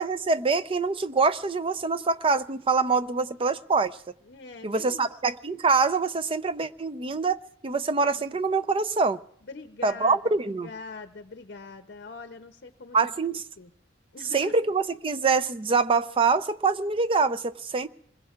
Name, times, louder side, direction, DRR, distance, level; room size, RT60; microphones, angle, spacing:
voice 1, 0.0-4.0 4.6-9.2 9.8-10.7 12.9-13.4 14.3-17.9, right 4 dB, 30° right, 0.5 m, -25 dB
voice 2, 4.2-5.1 8.1-8.4 9.4-13.1 13.6-13.7 14.1-14.5, left 3 dB, 55° left, 0.7 m, -43 dB
27.0 x 21.0 x 2.4 m
head